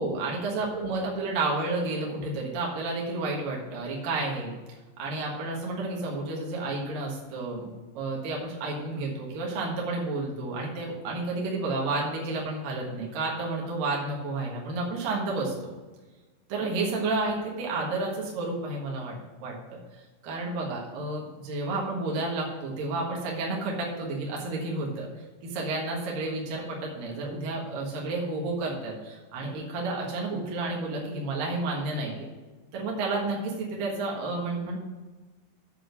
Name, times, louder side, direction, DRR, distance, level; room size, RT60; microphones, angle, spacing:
voice 1, 0.0-4.5 5.0-15.7 16.5-19.8 20.2-25.1 25.4-32.3 32.7-34.8, right 2 dB, 60° right, -2 dB, 2.7 m, -31 dB
8.2 x 6.3 x 6.4 m, 1.3 s
omnidirectional pair, 5.3 m